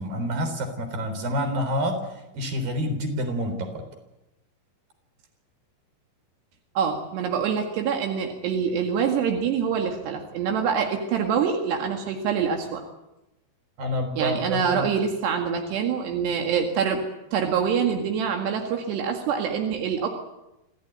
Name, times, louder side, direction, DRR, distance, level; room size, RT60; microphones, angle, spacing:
voice 1, 0.0-3.8 13.8-14.9, equal, 60° right, 7 dB, 5.5 m, -28 dB
voice 2, 6.8-12.8 14.2-17.0 17.3-20.1, right 7 dB, 85° right, 3 dB, 4.2 m, -25 dB
26.5 x 17.0 x 9.5 m, 0.94 s
omnidirectional pair, 4.7 m